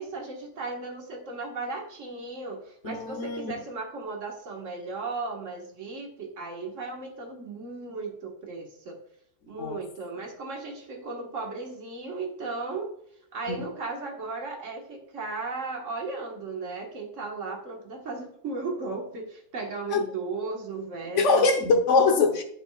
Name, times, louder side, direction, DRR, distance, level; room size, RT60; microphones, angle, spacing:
voice 1, 0.0-9.0 9.5-12.9 13.3-21.5, right 3 dB, 75° right, 1 dB, 2.0 m, -36 dB
voice 2, 2.8-3.5 9.6-9.8 13.5-13.6 19.9-20.0 21.1-22.4, left 4 dB, 70° left, 5 dB, 1.4 m, -22 dB
9.1 x 7.0 x 2.4 m, 0.68 s
omnidirectional pair, 1.3 m